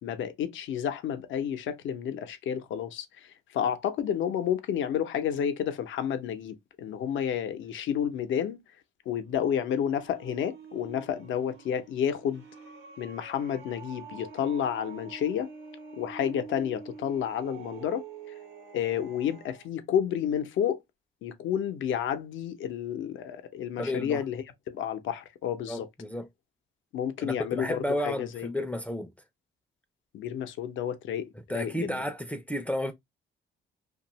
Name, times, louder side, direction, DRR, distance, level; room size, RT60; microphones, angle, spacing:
voice 1, 0.0-8.6 9.1-12.4 13.0-15.5 15.9-18.0 18.7-20.8 21.2-25.9 26.9-28.5 30.1-32.0, left 9 dB, 75° left, 0.6 m, -30 dB
sound 1, 9.2-19.7, right 5 dB, 75° right, 0.9 m, -47 dB
voice 2, 23.8-24.2 25.7-26.3 27.2-29.1 31.5-32.9, left 1 dB, 5° left, 0.4 m, -32 dB
2.6 x 2.3 x 2.9 m
cardioid pair, 90°, 20 cm